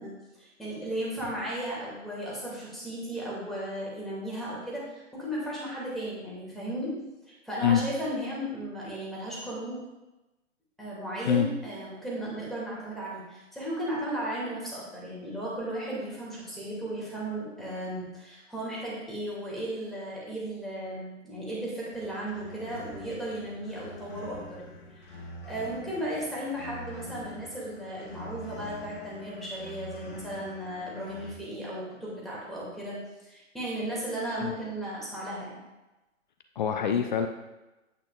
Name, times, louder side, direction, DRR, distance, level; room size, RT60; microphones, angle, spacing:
voice 1, 0.0-7.0 7.3-9.8 10.8-33.0 33.2-35.6, right 1 dB, ahead, -7 dB, 2.4 m, -35 dB
sound 1, 21.9-31.3, left 1 dB, 65° left, 1.6 m, -45 dB
voice 2, 36.6-37.3, left 8 dB, 35° left, 6 dB, 0.5 m, -24 dB
8.7 x 8.7 x 2.4 m, 1.0 s
figure-of-eight pair, 120°, 39 cm